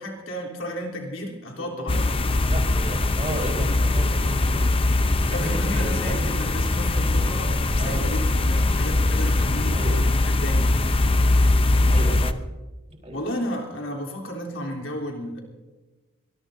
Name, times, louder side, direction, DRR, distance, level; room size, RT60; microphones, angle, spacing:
voice 1, 0.0-2.5 5.3-8.2 8.5-10.7 13.1-15.4, equal, 75° left, 0 dB, 3.5 m, -33 dB
sound 1, 1.9-12.3, left 2 dB, 30° left, 0.7 m, -21 dB
voice 2, 2.4-4.7 5.2-6.3 7.8-8.0 9.7-9.9 11.7-12.4 13.0-13.2, right 1 dB, 35° right, 0 dB, 4.0 m, -33 dB
24.5 x 20.5 x 2.7 m, 1.2 s
head